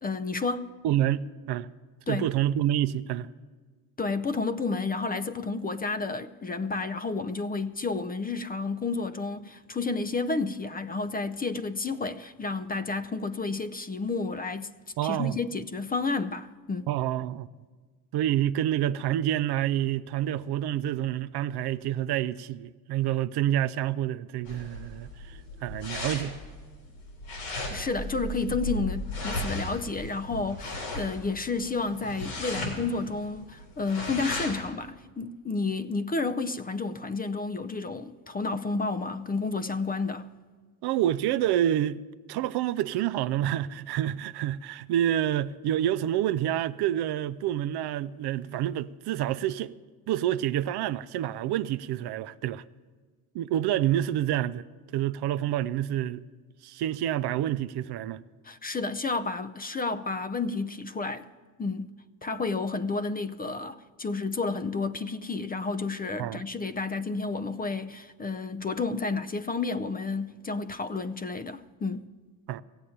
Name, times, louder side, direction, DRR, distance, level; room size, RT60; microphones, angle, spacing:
voice 1, 0.0-0.7 2.1-2.3 4.0-14.7 15.0-16.9 27.7-40.3 58.4-61.3 61.6-61.9 62.2-72.0, left 3 dB, 20° left, 0.5 m, -31 dB
voice 2, 0.8-1.7 2.1-3.3 15.0-15.4 16.9-17.5 18.1-26.4 40.8-42.0 42.3-49.7 50.1-52.6 53.3-54.6 54.9-56.2 56.6-58.2 66.2-66.4 72.5-72.6, right 12 dB, 60° right, 0.6 m, -28 dB
sound 1, 24.5-34.7, left 1 dB, 90° left, 3.9 m, -36 dB
16.0 x 8.0 x 8.6 m
supercardioid pair, 70°, 46 cm